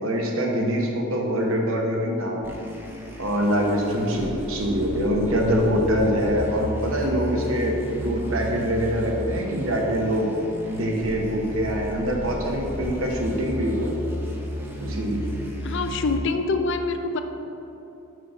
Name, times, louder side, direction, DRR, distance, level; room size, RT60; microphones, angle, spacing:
voice 1, 0.0-2.5 3.2-10.3 10.7-13.9 14.8-15.2, equal, 70° right, 0 dB, 1.2 m, -24 dB
sound 1, 2.4-16.2, equal, 10° right, 0.7 m, -34 dB
voice 2, 15.6-17.2, left 3 dB, 60° left, 7 dB, 0.5 m, -25 dB
6.3 x 5.8 x 5.4 m, 3.0 s
head